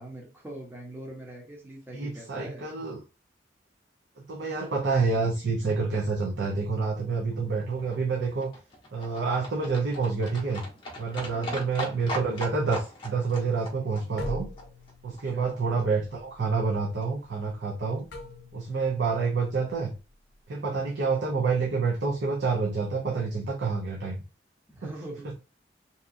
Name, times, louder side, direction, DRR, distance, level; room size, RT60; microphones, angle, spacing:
voice 1, 0.0-2.7 11.3-11.8 15.1-15.5 24.7-25.3, right 1 dB, 10° right, -2 dB, 0.7 m, -42 dB
voice 2, 1.9-3.0 4.2-8.5 8.9-10.6 11.0-14.5 15.0-18.0 18.5-19.9 20.5-24.2, right 4 dB, 75° right, -2 dB, 0.5 m, -28 dB
Livestock farm animals working animals, 7.3-15.5 15.8-15.9 16.1-16.2 16.4-16.5 16.7-16.8 17.0-17.1 17.3-17.4 17.7-17.8 18.0-18.1, left 1 dB, 30° left, 0.7 m, -40 dB
sound 1, 14.2-20.4, left 1 dB, 65° left, 0.6 m, -43 dB
2.7 x 2.3 x 2.4 m, 0.31 s
head